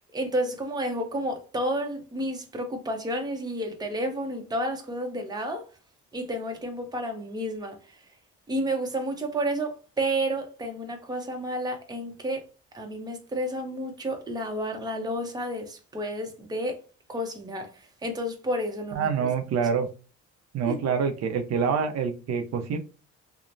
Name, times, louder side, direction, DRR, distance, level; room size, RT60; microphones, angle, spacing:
voice 1, 0.1-5.6 6.1-7.8 8.5-12.4 12.7-16.8 17.1-17.7 18.0-19.3 20.7-20.8, right 1 dB, 15° right, 0.7 m, -31 dB
voice 2, 18.9-19.9 20.5-22.8, right 6 dB, 60° right, 0.6 m, -26 dB
3.0 x 2.1 x 2.5 m
cardioid pair, 105°, 29 cm